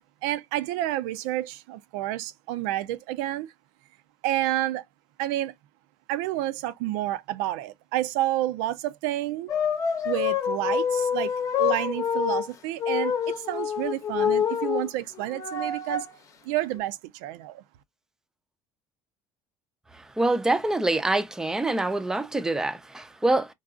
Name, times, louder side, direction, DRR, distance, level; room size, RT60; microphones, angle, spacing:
voice 1, 0.2-3.5 4.2-4.8 5.2-5.5 6.1-9.5 10.0-11.3 11.6-16.1 16.4-17.6, right 14 dB, 90° right, 0.4 m, -29 dB
sound 1, 9.5-12.5 12.8-14.9 15.1-16.1 16.8-16.9, left 7 dB, 35° left, 0.7 m, -26 dB
voice 2, 20.2-23.5, right 2 dB, 5° right, 0.4 m, -25 dB
3.8 x 2.3 x 2.3 m
cardioid pair, 125°, 9 cm